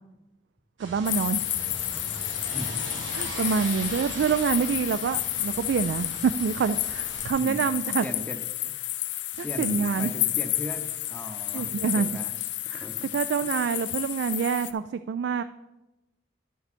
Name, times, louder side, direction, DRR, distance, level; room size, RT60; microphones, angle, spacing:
voice 1, 0.8-1.5 3.1-8.1 9.4-10.1 11.5-12.1 12.7-15.4, right 6 dB, 65° right, 12 dB, 0.3 m, -26 dB
sound 1, 0.8-7.3, right 2 dB, 85° right, 2.2 m, -40 dB
sound 2, 1.1-14.7, left 15 dB, 70° left, 0.5 m, -31 dB
voice 2, 7.4-7.7 8.0-8.4 8.7-12.3 12.7-13.0 13.4-13.9, equal, 10° left, 4 dB, 0.7 m, -38 dB
10.5 x 7.1 x 4.2 m, 1.0 s
head